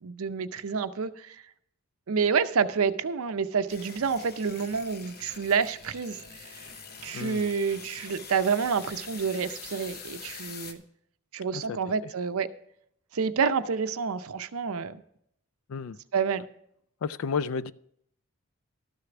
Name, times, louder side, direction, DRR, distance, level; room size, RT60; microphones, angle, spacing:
voice 1, 0.0-1.4 2.1-6.2 7.0-10.8 11.3-12.5 13.1-15.0 16.1-16.4, right 6 dB, 70° right, 0.6 m, -28 dB
sound 1, 3.7-10.7, left 5 dB, 45° left, 0.8 m, -44 dB
voice 2, 7.1-7.5 11.5-11.8 12.0-12.1 15.7-16.0 17.0-17.7, left 6 dB, 65° left, 0.4 m, -32 dB
12.5 x 6.6 x 6.0 m
head